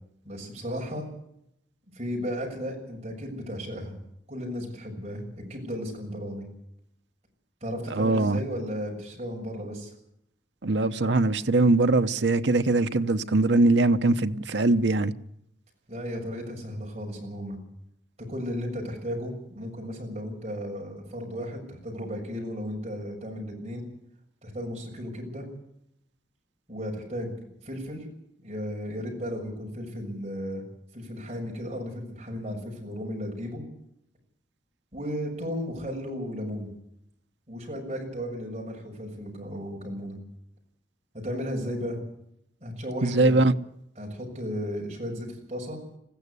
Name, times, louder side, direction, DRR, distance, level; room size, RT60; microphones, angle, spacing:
voice 1, 0.2-1.1 1.9-4.0 4.3-6.5 7.6-9.9 15.9-17.6 18.3-23.8 24.4-25.5 26.7-27.3 27.6-28.1 28.4-30.6 30.9-33.6 34.9-36.7 37.5-40.2 41.2-42.0 42.6-43.5 44.0-45.8, equal, 35° right, 6.9 m, -34 dB
voice 2, 8.0-8.4 10.6-15.1 43.0-43.5, right 2 dB, 80° right, 1.0 m, -22 dB
21.0 x 15.0 x 8.2 m
head